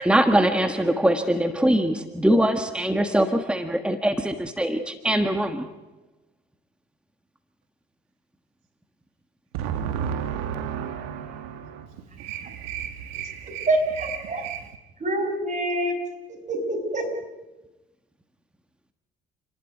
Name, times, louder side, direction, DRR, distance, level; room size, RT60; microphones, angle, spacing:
voice 1, 0.0-5.7, right 1 dB, 5° right, 7 dB, 1.6 m, -22 dB
voice 2, 9.5-11.9 12.2-13.7 14.0-14.7, right 8 dB, 90° right, 8 dB, 1.6 m, -32 dB
voice 3, 13.7-14.4 15.0-16.0 16.3-17.1, right 1 dB, 35° right, 4 dB, 5.9 m, -26 dB
29.5 x 11.5 x 9.2 m, 1.1 s
supercardioid pair, 75°, 21 cm